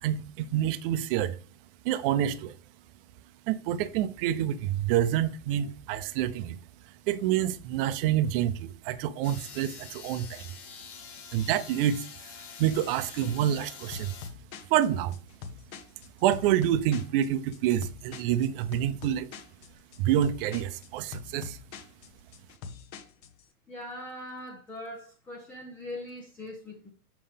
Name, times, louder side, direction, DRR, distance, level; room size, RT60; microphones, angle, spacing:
voice 1, 0.0-1.4 1.8-2.5 3.5-6.6 7.1-10.5 11.3-14.1 14.7-15.2 16.2-19.3 20.0-21.6, right 11 dB, 40° right, 0.6 m, -27 dB
sound 1, 9.2-14.3, left 7 dB, 70° left, 2.1 m, -46 dB
sound 2, 13.9-23.4, left 5 dB, 40° left, 1.0 m, -44 dB
voice 2, 23.7-26.9, left 1 dB, 5° left, 0.3 m, -41 dB
7.0 x 5.5 x 3.5 m
hypercardioid pair, 125°, 45 cm